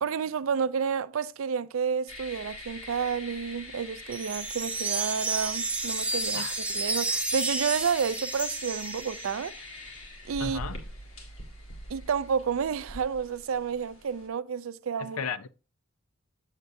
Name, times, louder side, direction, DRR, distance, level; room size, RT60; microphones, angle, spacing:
voice 1, 0.0-9.5 10.3-10.6 11.9-15.2, right 6 dB, 70° right, 0.4 m, -30 dB
sound 1, 2.1-14.3, left 1 dB, 70° left, 1.8 m, -44 dB
sound 2, 4.1-9.5, right 3 dB, 5° right, 0.6 m, -31 dB
voice 2, 10.4-10.8 15.0-15.5, left 6 dB, 85° left, 0.5 m, -35 dB
7.9 x 7.3 x 2.6 m
head